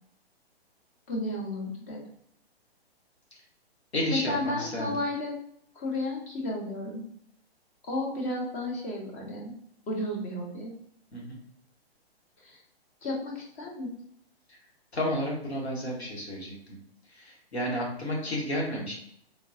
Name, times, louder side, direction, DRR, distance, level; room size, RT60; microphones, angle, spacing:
voice 1, 1.1-2.0 4.1-5.4 5.8-7.0 7.9-9.5 9.9-10.7 12.4-12.6 13.0-13.9, left 1 dB, 15° left, -1 dB, 0.4 m, -33 dB
voice 2, 3.9-5.0 11.1-11.4 14.5-14.6 14.9-16.8 17.1-18.9, equal, 80° left, -2 dB, 1.3 m, -32 dB
3.9 x 2.2 x 2.6 m, 0.68 s
figure-of-eight pair, 130°, 32 cm